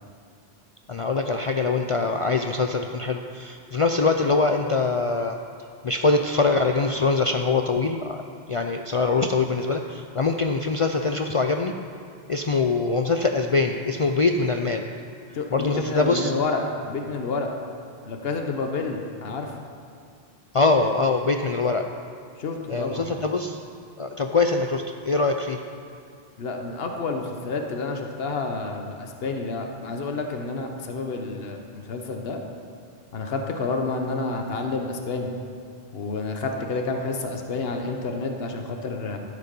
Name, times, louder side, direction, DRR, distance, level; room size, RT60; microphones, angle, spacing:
voice 1, 0.9-5.4 5.8-8.2 8.5-11.7 12.3-14.9 15.5-16.3 20.5-21.8 22.7-23.6 24.0-25.6, left 3 dB, 45° left, 4 dB, 0.4 m, -23 dB
voice 2, 15.3-17.5 18.1-19.5 22.4-23.1 26.4-32.4 33.1-35.3 35.9-39.2, left 3 dB, 70° left, 3 dB, 1.2 m, -29 dB
13.0 x 8.2 x 5.4 m, 2.3 s
omnidirectional pair, 1.1 m